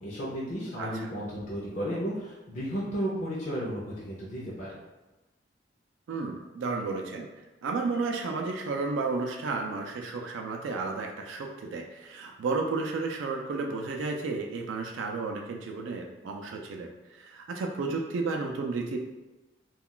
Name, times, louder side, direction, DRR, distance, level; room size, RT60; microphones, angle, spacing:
voice 1, 0.0-4.8, equal, 40° left, -7 dB, 0.5 m, -33 dB
voice 2, 0.8-1.1 6.1-7.3 7.6-19.0, right 3 dB, 90° right, 2 dB, 0.3 m, -32 dB
2.3 x 2.2 x 3.7 m, 1.1 s
head